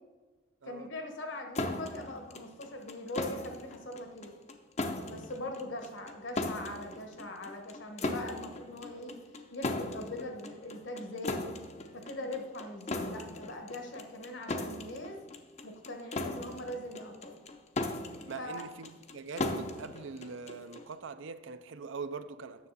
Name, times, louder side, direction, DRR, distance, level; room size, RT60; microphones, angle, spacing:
voice 1, 0.6-4.3 5.1-9.2 9.5-11.5 11.9-15.2 15.6-17.4 18.4-18.6, left 1 dB, 70° left, 1.2 m, -41 dB
sound 1, 1.6-20.9, left 2 dB, 35° left, 0.5 m, -38 dB
voice 2, 18.3-22.7, right 4 dB, 70° right, 0.5 m, -42 dB
9.4 x 6.7 x 4.0 m
head